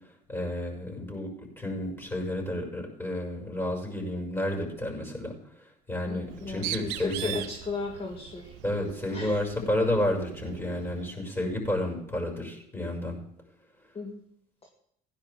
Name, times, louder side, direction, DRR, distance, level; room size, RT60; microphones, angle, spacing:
voice 1, 0.3-5.3 5.6-7.3 8.6-13.2, left 1 dB, 10° left, -1 dB, 6.3 m, -31 dB
voice 2, 6.0-8.6 9.1-9.4 9.8-9.9 13.9-14.2 14.6-14.7, left 3 dB, 30° left, 2 dB, 2.0 m, -36 dB
Bird, 6.2-11.1, right 14 dB, 70° right, 0.7 m, -40 dB
17.0 x 10.5 x 3.7 m, 0.72 s
hypercardioid pair, 65°, 20 cm